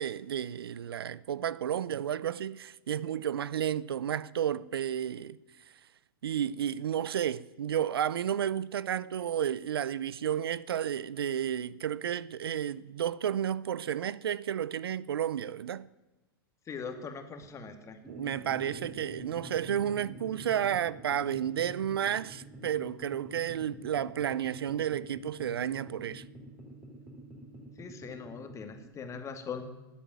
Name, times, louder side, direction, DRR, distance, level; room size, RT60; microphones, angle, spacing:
voice 1, 0.0-5.4 6.2-15.9 18.1-26.2, right 9 dB, 80° right, 0.6 m, -32 dB
voice 2, 16.7-18.0 27.8-29.7, left 5 dB, 25° left, 2.4 m, -41 dB
sound 1, 18.0-28.8, right 1 dB, 5° right, 4.1 m, -48 dB
17.5 x 8.6 x 9.3 m
hypercardioid pair, 110°, 12 cm